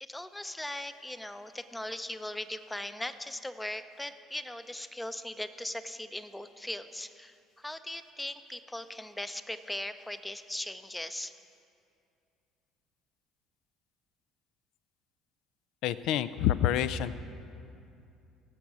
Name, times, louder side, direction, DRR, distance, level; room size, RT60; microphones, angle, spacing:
voice 1, 0.0-11.3, left 1 dB, 10° left, 11 dB, 0.7 m, -39 dB
voice 2, 15.8-17.2, left 11 dB, 65° left, 15 dB, 0.4 m, -27 dB
17.5 x 7.1 x 6.2 m, 2.5 s
hypercardioid pair, 60°, 0 cm